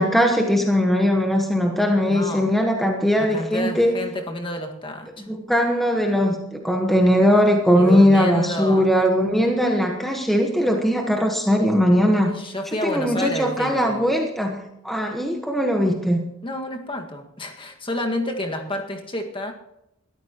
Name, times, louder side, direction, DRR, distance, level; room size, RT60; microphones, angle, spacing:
voice 1, 0.0-4.0 5.3-12.3 12.8-16.2, equal, ahead, 1 dB, 1.3 m, -20 dB
voice 2, 2.0-2.5 3.2-5.3 7.7-8.9 12.3-14.0 16.4-19.5, left 1 dB, 25° left, 3 dB, 1.8 m, -29 dB
21.5 x 14.0 x 3.0 m, 0.85 s
head